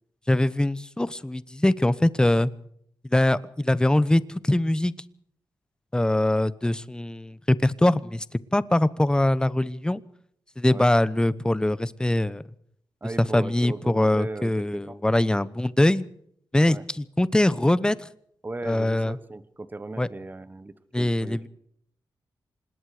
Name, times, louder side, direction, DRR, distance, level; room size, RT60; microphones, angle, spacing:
voice 1, 0.3-2.5 3.1-4.9 5.9-8.2 8.5-10.0 10.6-12.4 13.3-16.0 16.5-18.0 18.6-19.2 20.0-20.1 20.9-21.5, left 1 dB, 10° left, 17 dB, 0.9 m, -22 dB
voice 2, 13.0-15.0 16.7-16.9 18.4-21.5, right 2 dB, 20° right, 13 dB, 1.3 m, -37 dB
26.0 x 20.5 x 5.0 m, 0.69 s
wide cardioid pair, 105°, 8 cm